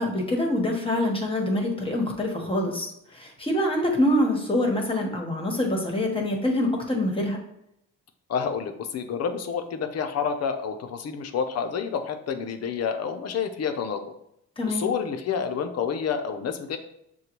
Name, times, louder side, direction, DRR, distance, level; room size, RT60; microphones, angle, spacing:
voice 1, 0.0-7.4 14.6-14.9, left 1 dB, 20° left, 1 dB, 1.1 m, -25 dB
voice 2, 8.3-14.0 14.7-16.8, left 6 dB, 55° left, 6 dB, 0.6 m, -29 dB
6.6 x 2.3 x 3.0 m, 0.77 s
cardioid pair, 90°, 30 cm